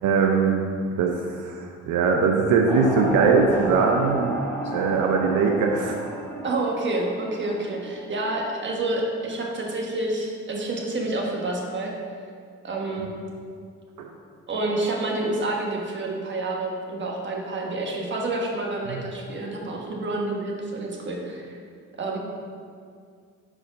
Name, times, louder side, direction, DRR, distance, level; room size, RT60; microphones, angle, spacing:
voice 1, 0.0-0.6 1.0-4.4 4.7-6.0 14.0-14.1 18.9-19.0, right 5 dB, 85° right, 1 dB, 0.7 m, -21 dB
sound 1, 2.7-8.7, right 1 dB, 5° left, 1.1 m, -33 dB
voice 2, 6.4-11.9 12.6-13.1 14.5-21.5 22.0-22.2, right 2 dB, 40° right, -1 dB, 1.3 m, -28 dB
5.4 x 5.0 x 5.2 m, 2.2 s
cardioid pair, 90°, 30 cm